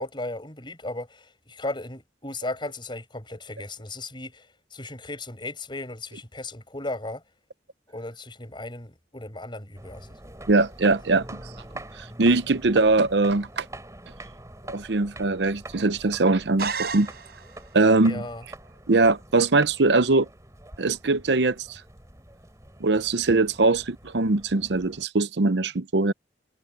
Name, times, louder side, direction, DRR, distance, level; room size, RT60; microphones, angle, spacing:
voice 1, 0.0-7.2 7.9-10.2 18.0-18.4, left 2 dB, 25° left, 6.0 m, -36 dB
sound 1, 9.8-25.0, right 1 dB, 20° right, 3.9 m, -44 dB
voice 2, 10.5-11.4 12.0-13.7 14.7-17.1 17.7-18.2 18.9-20.3 20.8-21.8 22.8-26.1, right 3 dB, 75° right, 0.8 m, -21 dB
sound 2, 16.6-17.7, right 5 dB, 60° right, 4.9 m, -32 dB
head